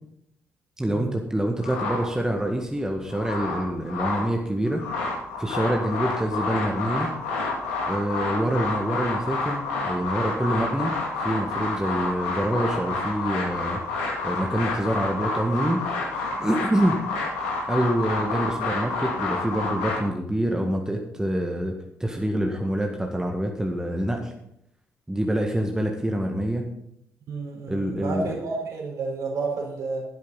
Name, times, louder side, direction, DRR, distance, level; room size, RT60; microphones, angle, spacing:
voice 1, 0.8-4.8 5.4-7.1 7.9-10.9 11.2-13.8 14.2-17.0 17.7-21.7 22.0-24.3 25.1-26.7 27.7-28.4, right 1 dB, 10° right, 2 dB, 1.8 m, -26 dB
sound 1, 1.6-2.5 2.9-4.3 4.7-20.0, left 3 dB, 70° left, 2.5 m, -29 dB
voice 2, 27.3-30.1, right 3 dB, 55° right, 0 dB, 4.4 m, -30 dB
12.5 x 11.0 x 4.1 m, 0.75 s
figure-of-eight pair, 40°, 7 cm